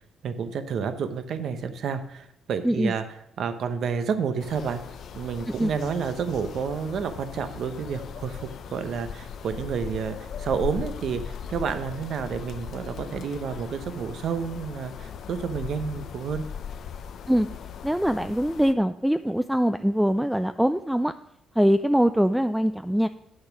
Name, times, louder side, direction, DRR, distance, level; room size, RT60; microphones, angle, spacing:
voice 1, 0.2-3.0 3.4-4.8 5.1-16.5, right 6 dB, 65° right, 10 dB, 0.8 m, -30 dB
sound 1, 4.4-18.7, left 7 dB, 65° left, 0.6 m, -39 dB
voice 2, 17.8-21.1 21.6-23.1, equal, 5° right, 10 dB, 0.3 m, -23 dB
8.3 x 6.4 x 5.9 m, 0.79 s
cardioid pair, 90°, 0 cm